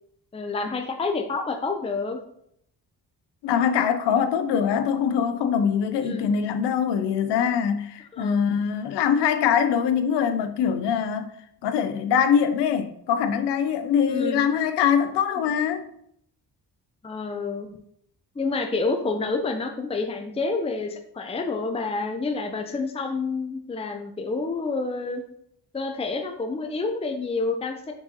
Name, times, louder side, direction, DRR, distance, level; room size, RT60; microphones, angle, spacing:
voice 1, 0.3-2.2 6.0-6.3 8.1-8.4 14.1-14.4 15.4-15.5 17.0-17.7 18.4-25.2 25.7-27.9, left 3 dB, 15° left, 0.6 m, -28 dB
voice 2, 3.4-11.3 11.6-15.8, left 7 dB, 90° left, 0.5 m, -23 dB
4.7 x 3.8 x 2.9 m
cardioid pair, 55°, 40 cm